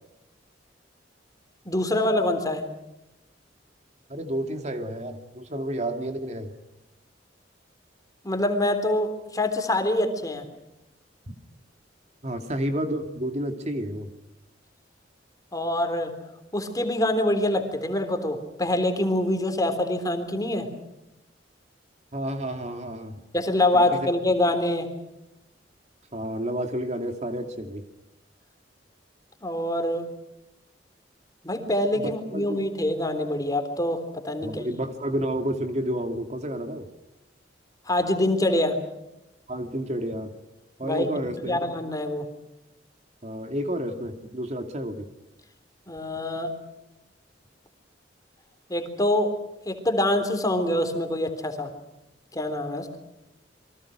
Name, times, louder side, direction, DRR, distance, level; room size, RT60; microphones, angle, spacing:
voice 1, 1.7-2.6 8.2-10.5 15.5-16.1 16.5-20.7 23.3-24.9 29.4-30.1 31.4-34.6 37.9-38.8 40.8-41.1 41.4-42.2 45.9-46.5 48.7-49.3 49.7-51.7 52.3-53.0, left 1 dB, 20° left, 7 dB, 3.6 m, -25 dB
voice 2, 4.1-6.5 12.2-14.1 22.1-23.2 23.7-23.9 26.1-27.8 31.9-32.6 34.4-36.9 39.5-40.3 40.8-41.6 43.2-45.1, right 1 dB, 40° right, 6 dB, 2.6 m, -30 dB
29.0 x 23.5 x 6.2 m, 0.90 s
head